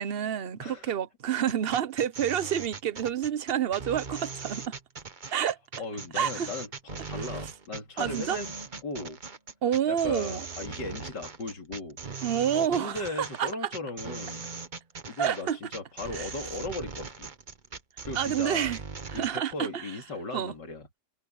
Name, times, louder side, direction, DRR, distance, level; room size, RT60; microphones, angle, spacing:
voice 1, 0.0-4.7 5.3-5.6 6.1-6.5 8.0-8.4 9.6-10.5 12.2-13.5 15.2-15.6 16.1-16.3 18.1-18.8 19.1-19.9 20.3-20.5, right 9 dB, 45° right, 0.8 m, -28 dB
voice 2, 0.6-1.0 5.8-8.5 8.8-9.2 9.9-12.0 12.5-14.5 15.1-17.3 18.0-18.7 19.1-20.9, left 3 dB, 85° left, 3.7 m, -37 dB
sound 1, 1.4-19.4, right 4 dB, 30° right, 1.3 m, -40 dB
omnidirectional pair, 1.8 m